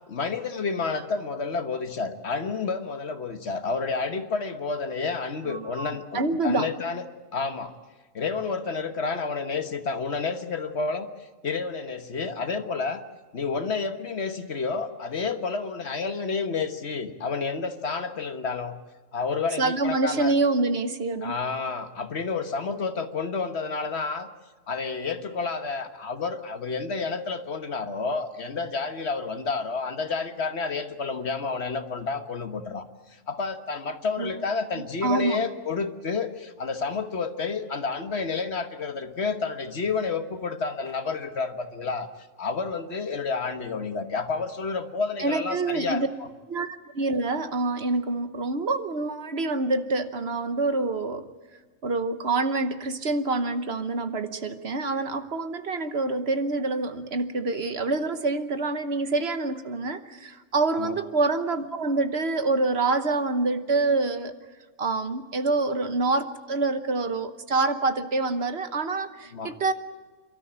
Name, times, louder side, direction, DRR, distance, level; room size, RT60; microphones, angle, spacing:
voice 1, 0.1-7.0 7.3-7.7 8.1-11.1 11.4-13.0 13.3-18.8 19.1-20.3 21.2-24.3 24.7-32.8 33.3-42.1 42.4-46.0 60.7-61.0 69.3-69.6, left 4 dB, 55° left, 8 dB, 1.5 m, -30 dB
voice 2, 5.4-6.7 19.6-21.4 34.2-34.4 35.0-35.4 45.2-46.1 46.5-51.3 51.8-64.3 64.8-69.7, right 3 dB, 55° right, 10 dB, 1.3 m, -26 dB
29.0 x 13.0 x 10.0 m, 1.3 s
omnidirectional pair, 1.3 m